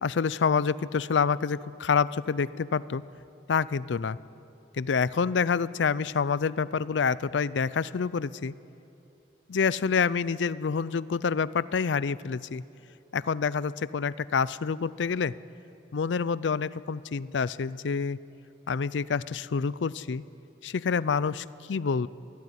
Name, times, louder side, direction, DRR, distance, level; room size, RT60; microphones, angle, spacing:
voice 1, 0.0-3.0 3.5-4.2 4.7-8.5 9.5-12.6 13.1-15.3 15.9-18.2 18.7-20.2 20.6-22.1, left 5 dB, 85° left, 18 dB, 0.5 m, -27 dB
22.5 x 13.5 x 9.8 m, 2.8 s
head